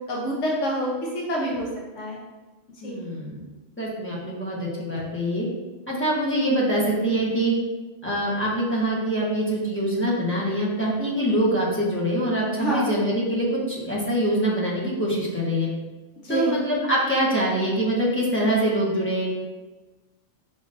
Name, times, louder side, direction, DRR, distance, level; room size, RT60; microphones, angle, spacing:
voice 1, 0.1-1.7 2.0-2.2 2.8-2.9 12.6-12.9 16.2-16.6, equal, 75° left, -2 dB, 1.2 m, -27 dB
voice 2, 2.8-3.4 3.8-5.5 5.9-7.5 8.0-13.6 13.8-15.7 16.3-19.3, right 1 dB, 10° left, -7 dB, 1.1 m, -24 dB
4.9 x 3.7 x 2.6 m, 1.2 s
omnidirectional pair, 1.2 m